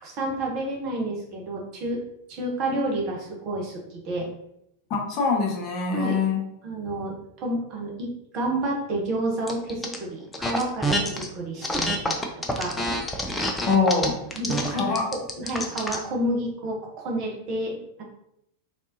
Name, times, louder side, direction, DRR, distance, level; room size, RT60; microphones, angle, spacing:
voice 1, 0.0-2.0 2.3-3.8 4.0-4.3 5.9-6.2 6.6-8.1 8.3-12.7 14.3-18.0, right 1 dB, 40° right, -1 dB, 0.9 m, -30 dB
voice 2, 4.9-6.4 13.6-14.2 14.7-15.0, left 4 dB, 40° left, 0 dB, 0.8 m, -23 dB
sound 1, 9.5-10.0 10.3-11.3 11.6-16.0, equal, 10° left, 0.4 m, -27 dB
3.4 x 2.6 x 2.7 m, 0.78 s
figure-of-eight pair, 90°, 0 cm